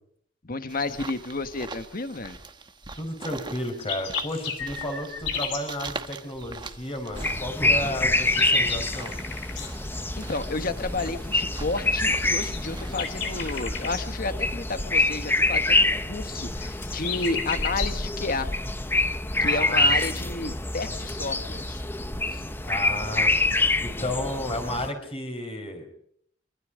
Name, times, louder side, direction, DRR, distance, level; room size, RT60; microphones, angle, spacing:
voice 1, 0.4-2.4 10.2-18.5 19.4-21.8 22.3-22.4, left 3 dB, 50° left, 10 dB, 1.4 m, -31 dB
sound 1, 0.7-13.6, right 3 dB, 25° right, 1.1 m, -41 dB
voice 2, 2.9-9.1 19.4-20.0 22.6-23.3 23.8-25.9, left 1 dB, 30° left, 5 dB, 4.8 m, -33 dB
sound 2, 3.6-5.7 7.7-9.7 12.4-14.0 16.4-18.0, left 6 dB, 70° left, 3.7 m, -33 dB
sound 3, 7.1-24.9, left 2 dB, 10° left, 0.9 m, -26 dB
25.0 x 24.0 x 5.1 m, 0.66 s
head